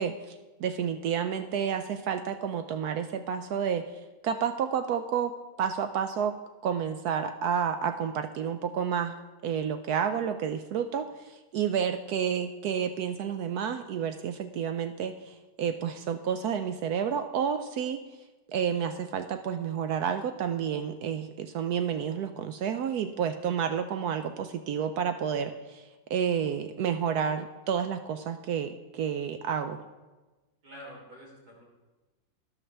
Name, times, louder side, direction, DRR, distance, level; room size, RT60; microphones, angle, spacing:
voice 1, 0.0-6.4 6.6-18.0 18.5-29.8, right 7 dB, 75° right, 9 dB, 0.8 m, -30 dB
voice 2, 30.6-31.6, equal, 50° right, -3 dB, 3.8 m, -47 dB
13.0 x 11.0 x 3.3 m, 1.2 s
omnidirectional pair, 2.1 m